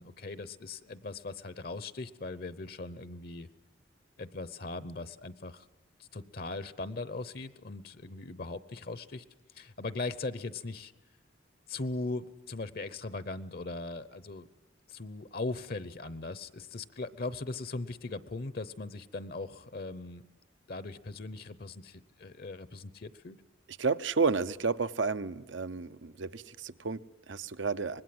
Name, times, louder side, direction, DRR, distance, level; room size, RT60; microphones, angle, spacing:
voice 1, 0.0-3.5 4.2-5.7 6.0-9.2 9.5-10.9 11.7-14.5 14.9-20.2 20.7-23.4, left 3 dB, 50° left, 15 dB, 0.8 m, -39 dB
voice 2, 23.8-28.0, right 4 dB, 75° right, 12 dB, 0.8 m, -31 dB
25.0 x 20.5 x 7.8 m, 1.2 s
head